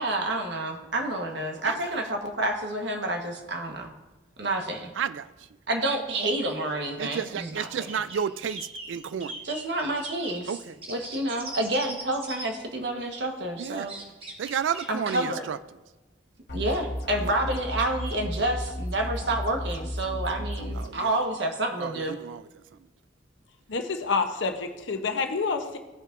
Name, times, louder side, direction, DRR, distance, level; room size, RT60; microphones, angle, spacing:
voice 1, 0.0-3.9 4.4-4.9 5.7-7.9 9.4-10.5 10.9-14.0 14.9-15.4 16.5-22.1, right 1 dB, 65° right, 2 dB, 1.3 m, -29 dB
voice 2, 5.0-5.3 7.0-9.4 10.5-10.8 13.6-13.9 14.4-15.6 17.2-17.3 20.7-21.1 21.8-22.5, right 7 dB, 80° right, 15 dB, 0.4 m, -32 dB
sound 1, 7.3-12.5 13.9-15.2, right 1 dB, 30° right, 1.2 m, -41 dB
sound 2, 16.5-20.9, equal, 50° left, 1.2 m, -34 dB
voice 3, 23.7-25.8, left 4 dB, 75° left, 6 dB, 0.8 m, -28 dB
16.0 x 5.5 x 2.6 m, 1.1 s
head